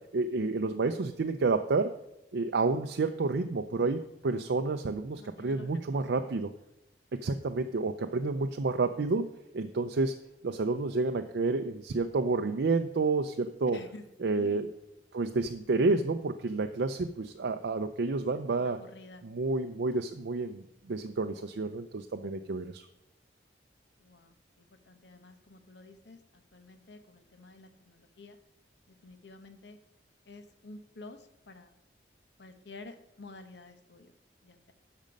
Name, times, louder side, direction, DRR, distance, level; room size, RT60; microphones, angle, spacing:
voice 1, 0.1-1.9 2.3-6.5 7.2-9.3 9.5-10.1 10.4-13.8 14.2-14.7 15.1-18.8 19.2-22.8, right 3 dB, 80° right, 6 dB, 0.5 m, -30 dB
voice 2, 5.2-6.2 13.7-14.0 14.3-14.7 18.6-19.2 24.0-28.4 28.9-29.8 30.3-31.7 32.4-34.1 34.4-34.7, left 2 dB, 80° left, 9 dB, 1.0 m, -50 dB
12.5 x 5.2 x 5.2 m, 0.89 s
head